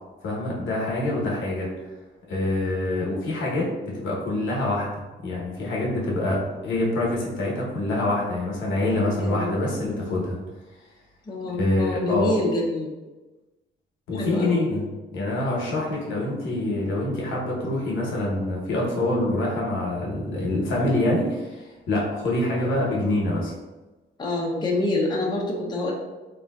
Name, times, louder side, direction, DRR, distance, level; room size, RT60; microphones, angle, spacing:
voice 1, 0.2-1.7 2.3-4.9 5.2-10.4 10.8-10.9 11.6-12.3 14.1-14.8 15.1-23.5, left 1 dB, 80° left, -4 dB, 1.0 m, -25 dB
voice 2, 9.2-10.2 11.3-12.9 14.2-14.6 24.2-25.9, left 2 dB, 20° left, -3 dB, 0.6 m, -27 dB
3.3 x 2.5 x 2.3 m, 1.2 s
cardioid pair, 90°, 20 cm